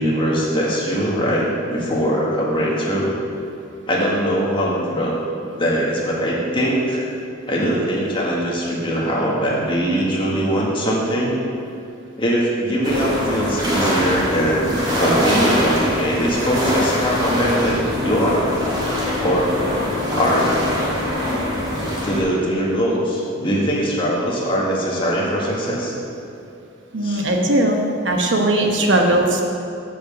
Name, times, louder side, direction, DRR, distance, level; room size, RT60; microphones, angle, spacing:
voice 1, 0.0-3.1 3.9-5.2 5.6-7.0 7.5-11.3 12.2-18.5 19.2-19.6 20.1-20.5 22.0-25.9 27.0-27.2, equal, 25° left, -4 dB, 1.7 m, -21 dB
sound 1, 12.8-22.2, equal, 25° right, 1.9 m, -22 dB
voice 2, 26.9-27.8 28.0-29.4, right 1 dB, 70° right, 1 dB, 1.1 m, -18 dB
7.9 x 5.4 x 6.5 m, 2.6 s
head